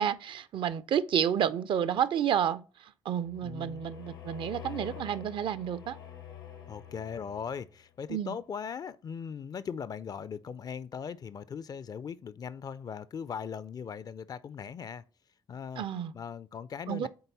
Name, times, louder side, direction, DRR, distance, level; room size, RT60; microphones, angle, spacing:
voice 1, 0.0-2.6 3.1-6.0 8.1-8.3 15.8-16.1 16.9-17.1, right 9 dB, 45° right, 0.4 m, -30 dB
sound 1, 3.2-7.9, left 9 dB, 80° left, 0.9 m, -46 dB
voice 2, 3.4-3.9 6.7-15.0 15.5-15.8 16.1-17.1, left 7 dB, 35° left, 0.4 m, -39 dB
6.6 x 4.1 x 4.0 m
figure-of-eight pair, 40°, 11 cm